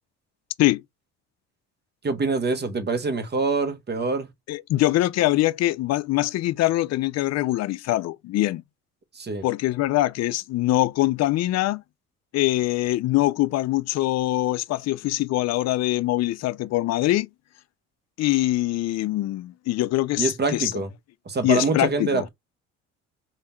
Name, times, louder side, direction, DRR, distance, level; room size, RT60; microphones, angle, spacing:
voice 1, 2.0-4.3 9.1-9.4 20.2-20.9 21.3-22.3, right 3 dB, 30° right, 1.4 m, -25 dB
voice 2, 4.5-8.6 9.4-11.8 12.3-17.3 18.2-20.8 21.4-22.3, left 16 dB, 55° left, 0.5 m, -23 dB
3.4 x 2.8 x 4.4 m
supercardioid pair, 75°, 31 cm